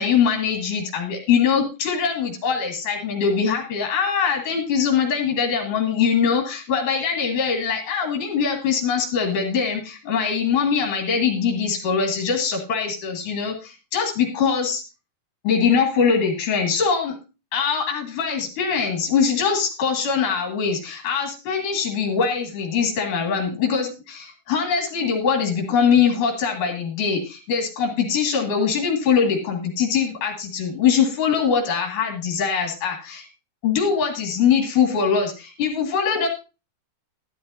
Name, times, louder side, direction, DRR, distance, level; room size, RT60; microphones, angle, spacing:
voice 1, 0.0-14.8 15.4-17.2 17.5-33.3 33.6-36.3, left 6 dB, 70° left, 1 dB, 3.5 m, -22 dB
13.0 x 12.0 x 2.7 m, 0.30 s
omnidirectional pair, 3.9 m